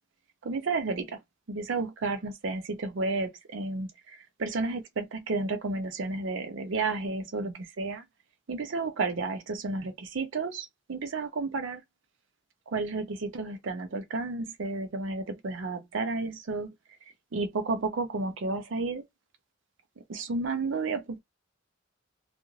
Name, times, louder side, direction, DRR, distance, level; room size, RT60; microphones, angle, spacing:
voice 1, 0.4-1.2 1.5-8.0 8.5-11.8 12.7-16.7 17.3-19.0 20.1-21.2, right 3 dB, 65° right, 0.5 m, -32 dB
2.4 x 2.4 x 3.0 m
head